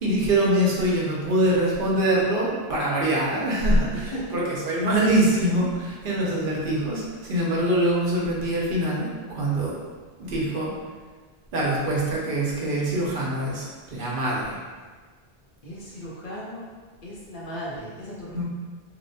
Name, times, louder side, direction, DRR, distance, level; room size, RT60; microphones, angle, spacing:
voice 1, 0.0-9.8 10.2-10.7 11.5-14.6 18.3-18.4, right 1 dB, 65° right, -4 dB, 0.7 m, -24 dB
voice 2, 15.6-16.7 17.0-18.4, equal, 60° left, -7 dB, 0.9 m, -36 dB
2.8 x 2.0 x 2.6 m, 1.4 s
omnidirectional pair, 1.0 m